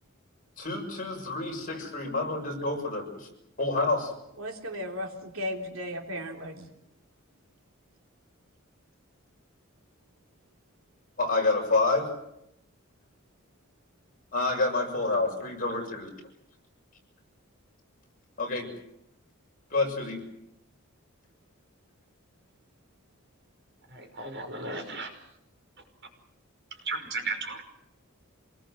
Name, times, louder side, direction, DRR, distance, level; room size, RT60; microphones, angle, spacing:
voice 1, 0.6-3.3 3.6-4.1 11.2-12.1 14.3-16.1 18.4-18.7 19.7-20.2, left 3 dB, 40° left, 1 dB, 6.8 m, -28 dB
voice 2, 4.4-6.7, left 1 dB, 75° right, 3 dB, 3.5 m, -35 dB
voice 3, 23.9-25.1 26.8-27.6, right 3 dB, 55° right, 4 dB, 5.5 m, -34 dB
27.0 x 20.0 x 7.8 m, 0.81 s
head